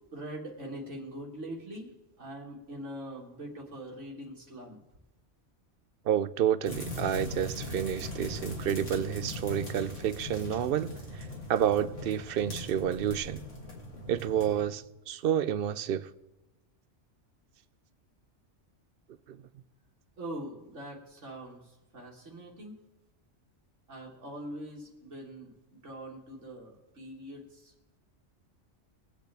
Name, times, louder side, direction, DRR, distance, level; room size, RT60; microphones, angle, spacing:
voice 1, 0.1-1.9 2.2-4.8 20.2-22.8 23.9-27.7, right 1 dB, 75° right, 2.1 m, -43 dB
voice 2, 6.1-13.4 14.1-16.1 19.3-19.4, right 9 dB, 60° right, 0.7 m, -30 dB
sound 1, 6.6-14.6, left 1 dB, 85° left, 2.9 m, -40 dB
22.5 x 8.1 x 3.4 m
omnidirectional pair, 1.2 m